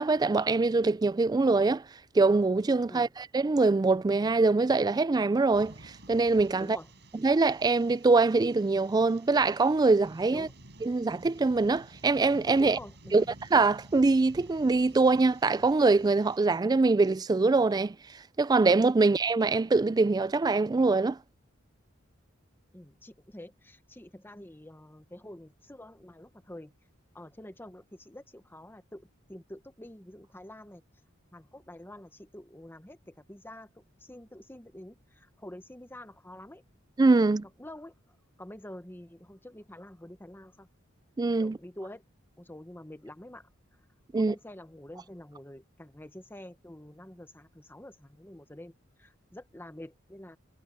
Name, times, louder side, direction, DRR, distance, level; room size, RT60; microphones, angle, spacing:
voice 1, 0.0-1.8 2.1-6.8 7.2-10.5 10.8-12.8 13.1-13.2 13.5-18.0 18.4-21.2 37.0-37.4 41.2-41.6 44.1-44.3, right 3 dB, 20° right, 0.3 m, -24 dB
sound 1, 5.5-16.4, right 1 dB, 60° right, 5.6 m, -52 dB
voice 2, 6.6-6.9 10.3-10.5 12.6-13.3 22.7-26.7 27.1-30.8 31.3-36.6 37.6-40.7 41.4-42.0 42.4-43.5 44.1-48.7 49.0-50.4, left 1 dB, 10° left, 1.3 m, -47 dB
head